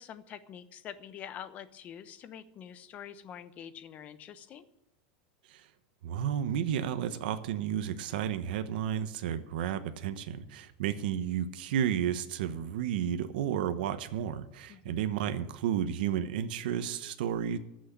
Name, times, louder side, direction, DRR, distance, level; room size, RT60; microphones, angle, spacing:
voice 1, 0.0-4.7 14.7-15.1, left 9 dB, 30° left, 12 dB, 0.9 m, -46 dB
voice 2, 6.0-17.6, right 9 dB, 80° right, 10 dB, 1.1 m, -32 dB
14.5 x 6.4 x 9.7 m, 0.83 s
supercardioid pair, 160°, 5 cm